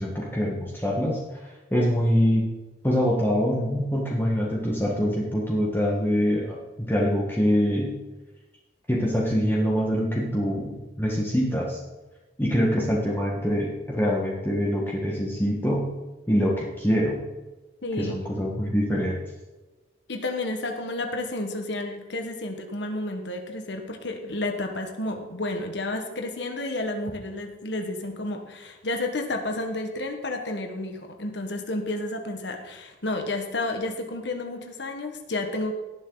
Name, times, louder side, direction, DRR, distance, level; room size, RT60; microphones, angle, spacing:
voice 1, 0.0-2.5 2.8-7.9 8.9-11.8 12.4-15.9 16.3-17.2 18.0-19.2, equal, 10° left, -3 dB, 1.5 m, -24 dB
voice 2, 17.8-18.3 20.1-35.7, left 2 dB, 70° left, 4 dB, 1.6 m, -31 dB
18.0 x 7.5 x 4.0 m, 1.2 s
head